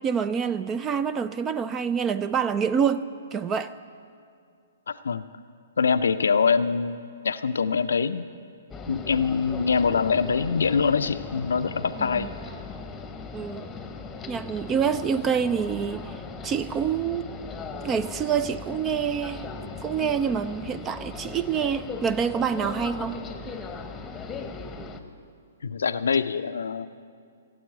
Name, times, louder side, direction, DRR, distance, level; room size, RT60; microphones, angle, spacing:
voice 1, 0.0-3.7 12.0-12.3 13.3-13.7 14.3-16.1 16.4-17.3 17.8-19.4 19.8-23.2, right 7 dB, 20° right, 14 dB, 0.4 m, -26 dB
voice 2, 4.9-5.3 5.8-8.3 8.9-12.3 25.6-26.9, left 5 dB, 70° left, 10 dB, 0.5 m, -24 dB
sound 1, 8.7-25.0, left 4 dB, 15° left, 1.0 m, -38 dB
16.0 x 7.6 x 9.2 m, 2.3 s
figure-of-eight pair, 120°, 0 cm